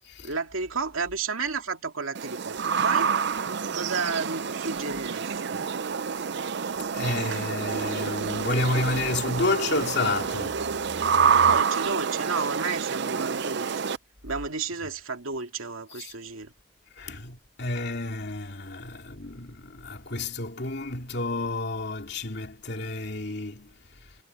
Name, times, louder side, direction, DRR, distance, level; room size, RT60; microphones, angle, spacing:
voice 1, 0.2-3.1 3.7-5.6 11.4-13.7 14.2-16.5, right 4 dB, 85° right, 2.5 m, -32 dB
sound 1, 2.1-14.0, right 6 dB, 55° right, 0.5 m, -27 dB
voice 2, 6.9-11.5 15.9-16.1 17.0-23.7, left 2 dB, 55° left, 2.8 m, -30 dB
head